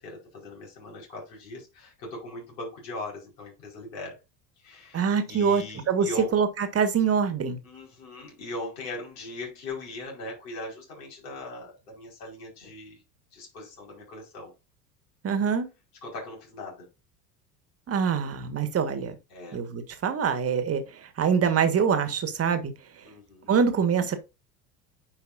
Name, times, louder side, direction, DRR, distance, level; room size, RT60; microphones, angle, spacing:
voice 1, 0.0-4.2 4.6-6.3 7.6-13.0 13.3-14.5 16.0-16.9 19.3-19.6 23.1-23.5, left 2 dB, 70° left, 5.3 m, -40 dB
voice 2, 4.9-7.6 15.2-15.7 17.9-19.1 19.5-22.7 23.5-24.2, right 6 dB, 30° right, 1.7 m, -25 dB
9.6 x 5.5 x 2.6 m
figure-of-eight pair, 75°, 49 cm